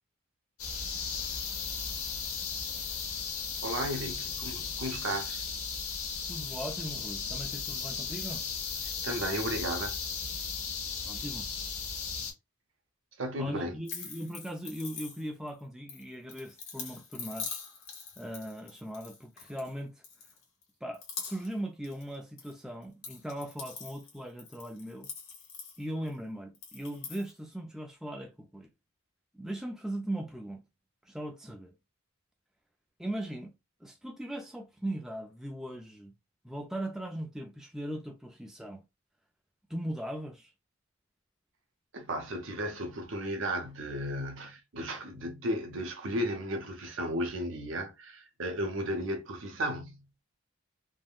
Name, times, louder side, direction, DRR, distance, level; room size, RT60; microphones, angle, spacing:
sound 1, 0.6-12.3, left 6 dB, 90° left, 0.9 m, -36 dB
voice 1, 3.6-5.5 9.0-10.0 13.2-13.8 41.9-50.1, equal, 60° right, 0.7 m, -34 dB
voice 2, 6.3-8.5 11.0-11.5 13.4-17.6 18.2-20.0 20.8-25.1 25.8-28.7 29.3-30.6 31.0-31.7 33.0-33.5 33.8-36.1 36.4-38.8 39.7-40.5, right 1 dB, ahead, 0.3 m, -39 dB
sound 2, 13.8-15.5 15.9-19.7 20.0-20.6 20.9-21.6 21.8-22.5 22.8-26.1 26.5-27.3, left 6 dB, 60° left, 1.1 m, -43 dB
3.4 x 2.1 x 2.3 m
head